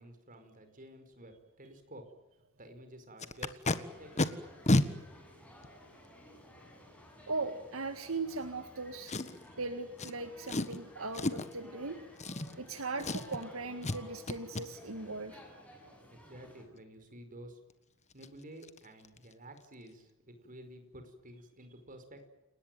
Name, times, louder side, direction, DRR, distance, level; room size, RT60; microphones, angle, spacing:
voice 1, 0.0-2.0 2.6-4.3 16.1-17.6 18.1-22.3, right 1 dB, 40° right, 7 dB, 5.1 m, -51 dB
Packing tape duct tape, 3.2-3.8 4.2-4.3 4.7-4.9 5.6-5.7 9.1-9.5 10.0-10.1 10.5-10.8 11.1-11.5 12.2-12.7 13.0-13.4 13.8-14.0 14.3-14.6 17.7-17.8 18.1-18.3 18.6-18.8 19.0-19.3 19.6-19.7, left 2 dB, 35° left, 1.5 m, -31 dB
sound 1, 3.6-16.6, left 1 dB, 5° left, 8.0 m, -55 dB
voice 2, 7.3-9.1 9.6-12.0 12.6-15.4, right 3 dB, 70° right, 8 dB, 1.9 m, -39 dB
29.5 x 18.5 x 9.3 m, 1.0 s
head